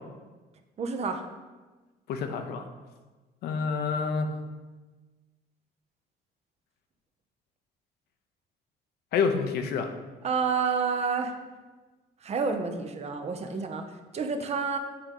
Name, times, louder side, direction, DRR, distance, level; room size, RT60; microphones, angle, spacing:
voice 1, 0.8-1.2 10.2-11.3 12.2-13.9 14.1-14.8, right 5 dB, 40° right, 6 dB, 0.8 m, -29 dB
voice 2, 2.1-2.6 3.4-4.3 9.1-9.9, left 5 dB, 70° left, 6 dB, 0.8 m, -28 dB
8.6 x 3.8 x 5.4 m, 1.3 s
cardioid pair, 110°, 17 cm